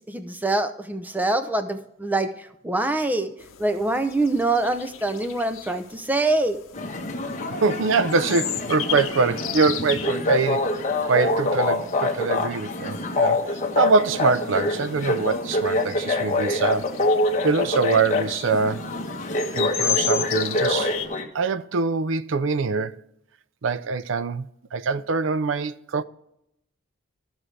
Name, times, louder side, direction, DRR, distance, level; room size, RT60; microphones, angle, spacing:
voice 1, 0.1-3.3 3.6-6.6, right 2 dB, 10° right, 0.6 m, -24 dB
sound 1, 3.4-21.1, left 11 dB, 85° left, 0.8 m, -35 dB
sound 2, 6.7-21.2, left 2 dB, 40° left, 1.1 m, -26 dB
voice 2, 7.6-10.7 11.1-13.4 13.8-16.9 17.4-18.9 19.6-20.9 21.3-23.0 23.6-26.0, right 4 dB, 70° right, 0.5 m, -24 dB
14.0 x 6.1 x 3.3 m
head